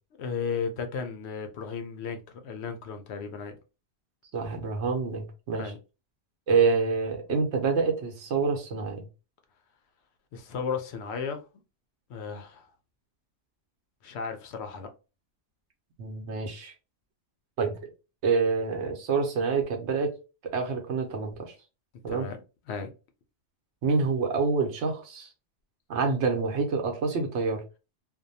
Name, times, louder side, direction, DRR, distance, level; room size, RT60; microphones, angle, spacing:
voice 1, 0.2-3.6 5.6-5.8 10.3-11.4 12.1-12.7 14.0-14.9 22.1-22.4 22.7-22.9, left 6 dB, 75° left, 0.8 m, -34 dB
voice 2, 4.3-5.7 6.5-9.1 16.0-16.7 17.6-17.7 18.2-20.2 20.4-21.5 22.0-22.3 23.8-25.3 25.9-27.6, right 4 dB, 85° right, 1.0 m, -27 dB
2.6 x 2.2 x 2.6 m
omnidirectional pair, 1.2 m